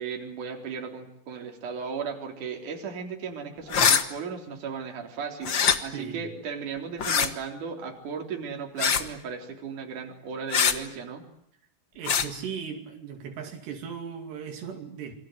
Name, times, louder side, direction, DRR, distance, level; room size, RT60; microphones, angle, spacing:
voice 1, 0.0-11.2, right 6 dB, 50° right, 3 dB, 4.9 m, -36 dB
sound 1, 3.7-4.0 5.4-5.8 7.0-7.3 8.8-9.1 10.5-10.8 12.0-12.3, left 6 dB, 75° left, 1.0 m, -22 dB
voice 2, 5.8-6.3 12.0-15.1, right 7 dB, 75° right, 4 dB, 4.7 m, -37 dB
28.5 x 24.0 x 7.9 m, 0.74 s
omnidirectional pair, 4.9 m